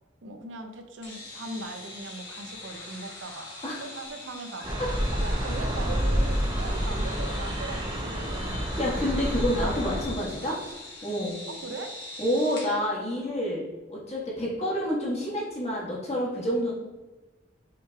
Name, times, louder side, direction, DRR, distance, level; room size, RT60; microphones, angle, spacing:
voice 1, 0.2-3.5 3.8-4.8 5.1-8.6 11.5-12.0, right 2 dB, 75° right, 6 dB, 0.5 m, -39 dB
sound 1, 1.0-12.8, left 2 dB, 65° left, 1.4 m, -42 dB
sound 2, 4.6-10.0, equal, 25° right, 0.6 m, -28 dB
voice 2, 8.8-10.6 11.0-11.4 12.2-13.6 13.9-16.7, equal, 35° left, -6 dB, 1.3 m, -28 dB
5.7 x 3.2 x 2.2 m, 1.2 s
head